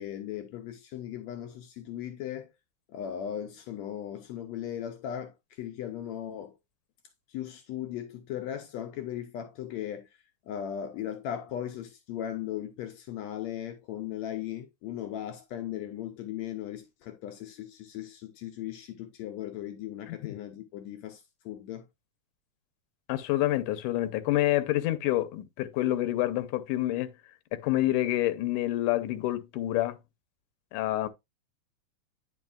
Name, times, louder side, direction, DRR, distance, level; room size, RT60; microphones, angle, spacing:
voice 1, 0.0-2.5 2.9-6.5 7.3-10.1 10.5-21.9, left 10 dB, 75° left, 1.8 m, -37 dB
voice 2, 23.1-27.1 27.5-30.0 30.7-31.1, left 15 dB, 90° left, 2.2 m, -27 dB
9.5 x 5.4 x 2.4 m
omnidirectional pair, 3.6 m